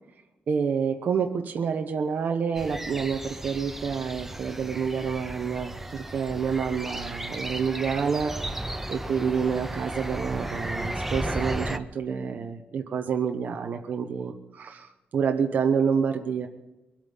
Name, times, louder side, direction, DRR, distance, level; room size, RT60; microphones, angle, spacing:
voice 1, 0.5-16.5, right 6 dB, 55° right, 3 dB, 1.0 m, -28 dB
sound 1, 2.5-11.8, right 1 dB, 5° right, 0.6 m, -34 dB
22.5 x 8.8 x 5.6 m, 1.0 s
wide cardioid pair, 170°, 3 cm